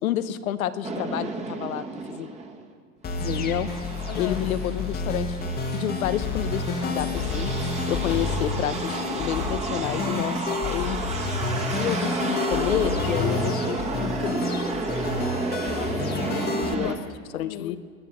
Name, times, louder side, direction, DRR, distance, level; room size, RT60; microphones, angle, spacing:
voice 1, 0.0-2.3 3.2-3.7 4.2-7.5 7.9-11.0 11.7-14.4 16.7-17.0 17.3-17.8, left 11 dB, 80° left, 12 dB, 1.0 m, -29 dB
sound 1, 0.8-2.7 3.1-17.0, right 3 dB, 15° right, 1.5 m, -32 dB
sound 2, 3.0-16.7, left 3 dB, 20° left, 1.3 m, -29 dB
voice 2, 4.1-4.4 15.7-17.8, left 15 dB, 45° left, 13 dB, 0.6 m, -38 dB
20.0 x 7.4 x 7.1 m, 2.1 s
hypercardioid pair, 120°, 41 cm